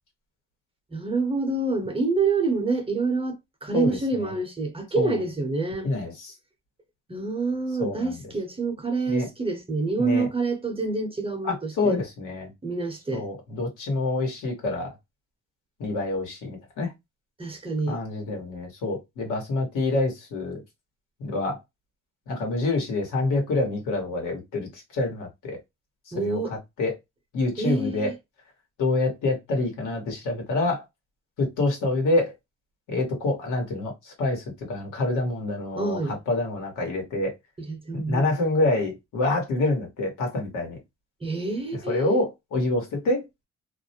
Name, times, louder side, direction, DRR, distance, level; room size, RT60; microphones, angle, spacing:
voice 1, 0.9-5.9 7.1-11.9 12.6-13.3 17.4-18.0 26.1-26.6 27.6-28.2 35.8-36.2 37.6-38.3 41.2-42.2, right 3 dB, 20° right, 0.7 m, -27 dB
voice 2, 3.7-4.3 4.9-5.2 5.8-6.3 7.8-8.2 9.1-9.3 10.0-10.2 11.4-12.5 13.1-14.9 15.8-16.9 17.9-20.6 21.2-21.6 22.3-25.6 26.2-26.4 26.8-26.9 27.3-28.1 28.8-30.8 31.4-32.3 32.9-36.0 36.3-37.3 37.9-40.8 41.9-43.2, left 2 dB, 85° left, 1.2 m, -27 dB
2.4 x 2.1 x 2.7 m
cardioid pair, 90°, 30 cm